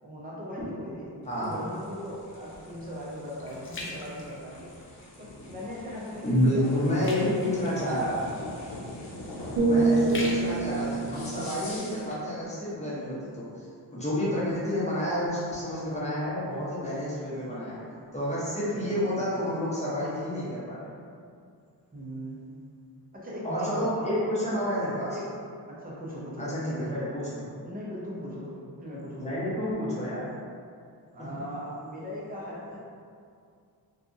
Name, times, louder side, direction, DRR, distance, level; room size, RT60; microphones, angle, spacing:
voice 1, 0.0-4.7 5.2-7.9 14.1-14.5 18.7-19.6 21.9-22.4 23.1-24.2 25.1-25.3 25.7-27.1 27.6-29.4 31.1-32.8, equal, 20° right, -6 dB, 0.6 m, -39 dB
sound 1, 1.2-12.2, left 1 dB, 85° left, 0.7 m, -43 dB
sound 2, 2.4-5.1 5.6-5.9 6.2-12.1 12.7-12.8, left 2 dB, 30° left, 0.4 m, -43 dB
voice 2, 6.2-8.4 9.7-17.8 18.1-20.8 23.4-25.2 26.4-27.4 29.2-30.2 31.2-31.3, equal, 15° left, -9 dB, 0.9 m, -29 dB
sound 3, 9.6-13.5 14.0-14.2, right 3 dB, 90° right, 0.6 m, -28 dB
2.6 x 2.4 x 2.5 m, 2.3 s
wide cardioid pair, 85°, 42 cm